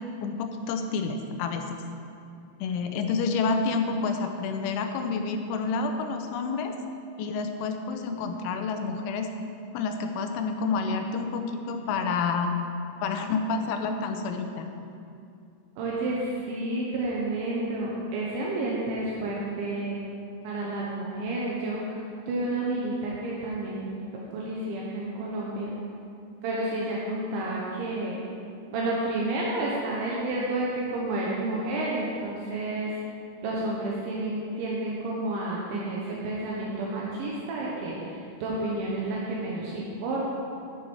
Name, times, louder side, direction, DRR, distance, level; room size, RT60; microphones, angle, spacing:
voice 1, 0.2-1.8 2.6-6.7 7.2-9.3 9.7-12.5 13.0-14.7, left 4 dB, 85° left, 5 dB, 3.1 m, -29 dB
voice 2, 15.8-20.0 20.4-22.0 22.3-24.0 24.3-25.7 26.4-28.2 28.7-33.0 33.4-40.4, right 2 dB, 75° right, -4 dB, 3.4 m, -30 dB
11.5 x 9.5 x 4.7 m, 2.5 s
omnidirectional pair, 5.5 m